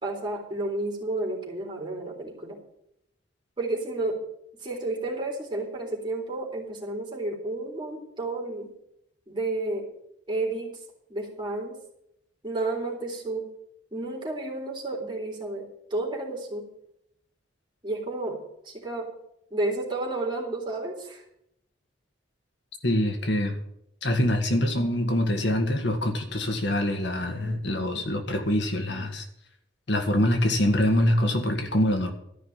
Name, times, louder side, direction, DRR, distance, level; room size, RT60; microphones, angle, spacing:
voice 1, 0.0-2.6 3.6-4.2 4.6-8.7 9.3-9.9 10.3-10.8 11.1-11.8 12.4-13.5 13.9-16.7 17.8-19.1 19.5-21.2, right 2 dB, 25° right, -2 dB, 3.8 m, -31 dB
voice 2, 22.8-23.6 24.0-29.3 29.9-32.1, left 1 dB, 70° left, 5 dB, 1.8 m, -24 dB
13.5 x 5.7 x 9.3 m, 0.77 s
head